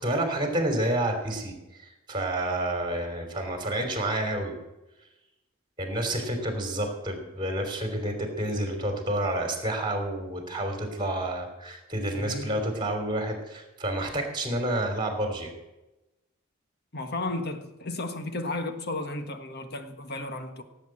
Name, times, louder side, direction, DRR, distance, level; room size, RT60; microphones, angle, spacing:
voice 1, 0.0-4.5 5.8-15.5, right 1 dB, 20° right, 3.1 m, -29 dB
voice 2, 12.1-12.6 16.9-20.6, left 2 dB, 50° left, 1.4 m, -34 dB
17.0 x 8.2 x 7.7 m
head